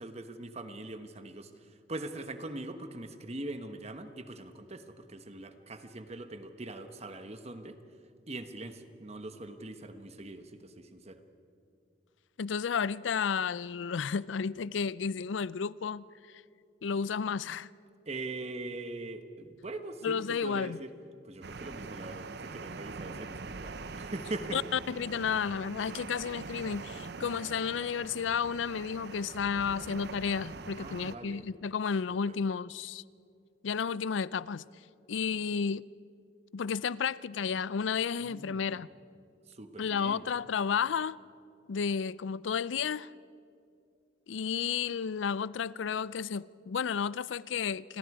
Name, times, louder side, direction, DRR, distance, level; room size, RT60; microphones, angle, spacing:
voice 1, 0.0-7.8 8.3-11.2 18.0-20.9 21.2-24.6 30.8-31.4 32.3-32.4 38.2-38.8 39.5-40.3, right 2 dB, 35° right, 1.2 m, -42 dB
voice 2, 12.4-16.1 16.8-17.7 20.0-20.8 24.5-33.0 33.6-34.6 35.1-35.9 36.5-38.9 39.8-41.2 41.7-43.1 44.3-48.0, left 6 dB, 85° left, 0.4 m, -32 dB
sound 1, 21.4-31.1, right 4 dB, 60° right, 0.8 m, -43 dB
29.5 x 21.5 x 4.9 m
head